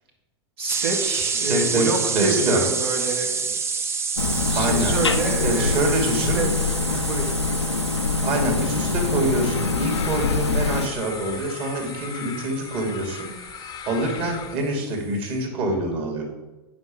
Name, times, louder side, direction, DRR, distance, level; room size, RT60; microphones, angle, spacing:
voice 1, 0.6-3.6 4.5-6.5 6.9-7.3, right 2 dB, 65° right, -3 dB, 2.0 m, -28 dB
sound 1, 0.7-14.3, right 5 dB, 20° right, 0.6 m, -29 dB
voice 2, 1.3-2.6 4.5-5.0 5.4-6.5 8.2-16.3, right 2 dB, 40° right, 1 dB, 2.5 m, -26 dB
sound 2, 4.2-10.9, left 4 dB, 90° left, 0.6 m, -24 dB
sound 3, 9.4-14.6, left 10 dB, 30° left, 0.7 m, -38 dB
8.4 x 5.3 x 7.1 m, 1.1 s
figure-of-eight pair, 95°, 14 cm